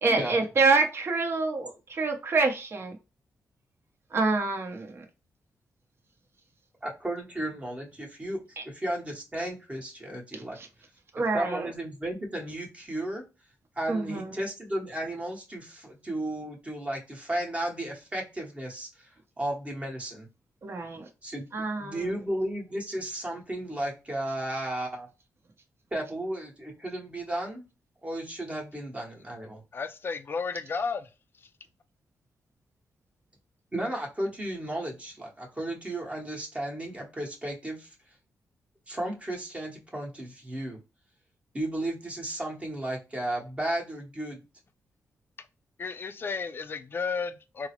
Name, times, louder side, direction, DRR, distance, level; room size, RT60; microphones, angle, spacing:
voice 1, 0.0-3.0 4.1-5.0 8.6-8.7 10.3-10.7 11.1-11.7 13.9-14.4 20.6-21.1 21.5-22.2, right 3 dB, 45° right, 0.8 m, -27 dB
voice 2, 6.8-8.4 8.7-10.6 11.3-13.2 13.8-18.9 19.4-20.3 21.2-21.5 21.8-25.1 25.9-27.6 28.0-29.6 33.7-37.9 38.9-40.8 41.5-44.4, right 1 dB, 20° right, 1.0 m, -34 dB
voice 3, 29.7-31.1 45.8-47.7, left 5 dB, 40° left, 0.4 m, -33 dB
3.7 x 2.0 x 2.9 m
cardioid pair, 105°, 6 cm